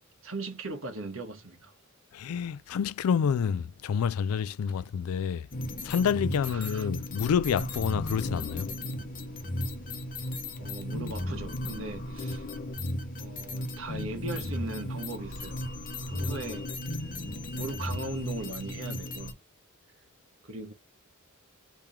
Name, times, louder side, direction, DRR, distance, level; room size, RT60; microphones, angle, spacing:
voice 1, 0.2-1.7 6.5-6.9 10.6-12.5 13.2-15.7 16.1-16.7 17.5-19.4 20.4-20.7, right 2 dB, 65° right, 1.5 m, -38 dB
voice 2, 2.1-5.5 5.8-8.7, left 7 dB, 75° left, 0.3 m, -28 dB
sound 1, 5.5-19.3, left 1 dB, 40° left, 0.8 m, -35 dB
3.6 x 3.1 x 4.2 m
head